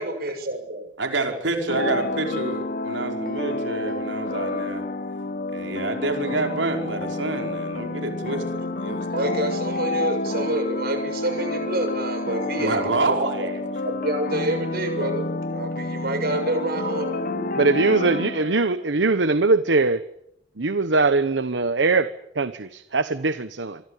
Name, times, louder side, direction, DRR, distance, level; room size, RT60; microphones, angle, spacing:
voice 1, 0.0-0.9 8.5-8.7 9.0-13.5 13.8-17.5, right 1 dB, 55° right, 6 dB, 6.9 m, -28 dB
voice 2, 1.0-4.8 5.5-9.0 12.6-13.6, right 2 dB, 90° right, 4 dB, 5.2 m, -28 dB
sound 1, 1.7-18.9, left 2 dB, 50° left, 1.1 m, -29 dB
voice 3, 17.6-20.0 20.6-22.1 22.4-23.8, right 3 dB, 70° right, 12 dB, 1.1 m, -21 dB
26.5 x 24.0 x 8.4 m, 0.79 s
head